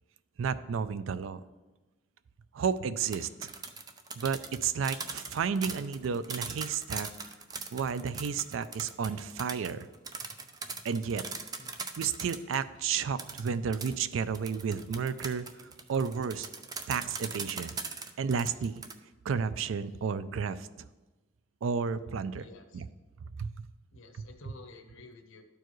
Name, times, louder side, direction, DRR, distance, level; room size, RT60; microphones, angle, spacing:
voice 1, 0.4-1.4 2.5-3.5 4.2-7.1 7.7-9.9 10.8-11.3 12.0-16.5 16.9-17.8 18.2-18.8 19.2-20.7 21.6-22.5 22.7-22.9 23.4-23.7, right 6 dB, 80° right, 14 dB, 0.4 m, -32 dB
sound 1, 3.0-12.6 13.2-18.9, right 4 dB, 20° right, 0.4 m, -40 dB
voice 2, 22.3-22.8 23.9-25.4, left 3 dB, 85° left, 6 dB, 0.9 m, -51 dB
12.0 x 4.6 x 3.1 m, 1.2 s
head